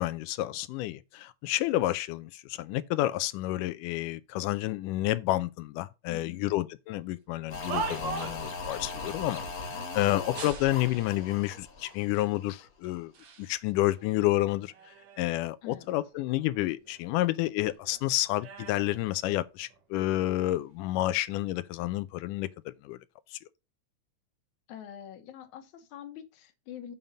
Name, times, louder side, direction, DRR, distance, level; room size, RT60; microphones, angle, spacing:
voice 1, 0.0-13.1 13.4-14.7 15.2-22.5 22.8-23.0 23.3-23.4, left 16 dB, 85° left, 2.1 m, -30 dB
voice 2, 6.1-6.5 15.6-15.9 24.7-26.9, left 10 dB, 70° left, 2.4 m, -45 dB
sound 1, 7.3-8.6 10.3-11.2 12.0-12.1 12.8-13.5 13.9-15.4 15.8-17.4 17.7-19.8 20.6-20.9, right 5 dB, 60° right, 1.2 m, -41 dB
sound 2, 7.5-12.7 12.9-13.0, left 3 dB, 35° left, 1.8 m, -39 dB
7.3 x 5.4 x 5.3 m
omnidirectional pair, 3.7 m